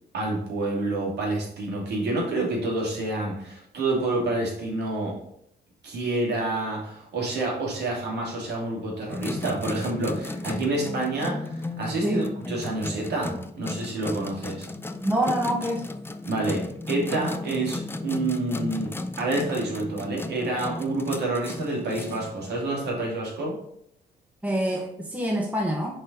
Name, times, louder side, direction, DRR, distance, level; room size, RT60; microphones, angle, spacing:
voice 1, 0.1-5.2 5.8-14.7 16.2-23.6, right 2 dB, 65° right, -3 dB, 2.6 m, -28 dB
sound 1, 9.1-22.9, left 2 dB, 10° left, 0.5 m, -35 dB
voice 2, 15.0-15.8 24.4-26.0, right 1 dB, 10° right, 0 dB, 1.0 m, -26 dB
5.3 x 4.1 x 5.4 m, 0.72 s
cardioid pair, 80°, 18 cm